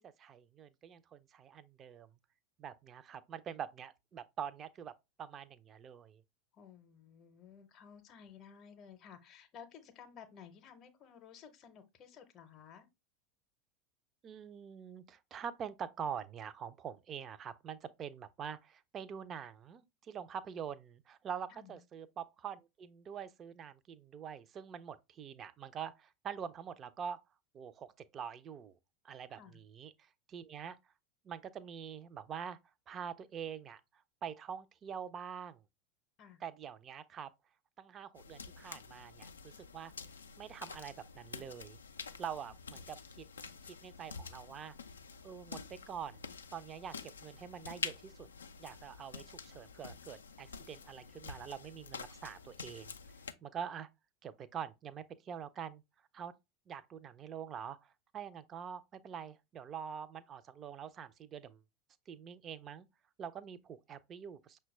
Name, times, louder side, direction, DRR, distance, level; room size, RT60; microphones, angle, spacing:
voice 1, 0.0-2.1 2.6-4.9 5.2-6.2 14.2-27.2 27.5-28.8 29.0-30.8 31.2-32.6 32.9-35.6 36.4-37.3 37.8-39.9 40.4-41.8 42.2-43.3 43.6-44.8 45.2-45.6 45.9-46.2 46.5-48.3 48.6-52.9 53.4-53.9 54.2-55.8 56.1-56.3 56.7-61.6 62.1-62.9 63.2-64.6, right 8 dB, 35° right, 0.4 m, -45 dB
voice 2, 6.5-12.9 21.5-21.8 29.3-29.6 36.2-36.4, left 7 dB, 40° left, 0.6 m, -55 dB
sound 1, 38.1-53.3, left 5 dB, 80° left, 0.3 m, -48 dB
5.7 x 2.2 x 3.1 m
figure-of-eight pair, 80°, 0 cm